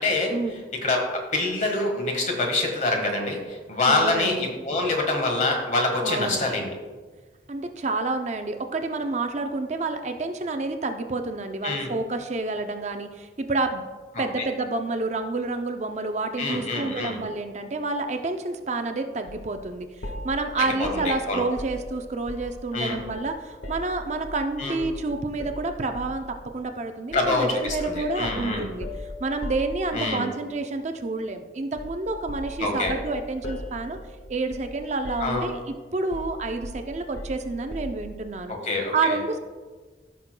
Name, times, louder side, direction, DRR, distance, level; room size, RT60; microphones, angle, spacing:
voice 1, 0.0-0.3 0.7-6.7 11.6-11.9 14.4-14.5 16.4-17.2 20.8-21.4 22.7-23.0 24.6-24.8 27.1-28.7 29.9-30.3 32.6-32.9 35.2-35.5 38.5-39.2, left 2 dB, 45° left, 2 dB, 1.4 m, -25 dB
voice 2, 3.9-4.5 6.0-6.4 7.5-13.8 14.2-34.0 34.3-38.5 38.9-39.4, right 3 dB, 40° right, 6 dB, 0.5 m, -29 dB
sound 1, 19.3-19.5 20.0-22.6 23.0-24.4 24.8-25.0 25.4-26.3 27.1-27.3 27.7-30.2 31.8-32.0 32.3-34.8 35.0-35.7 36.1-38.1, left 1 dB, 85° left, 1.4 m, -38 dB
14.5 x 6.3 x 2.2 m, 1.4 s
head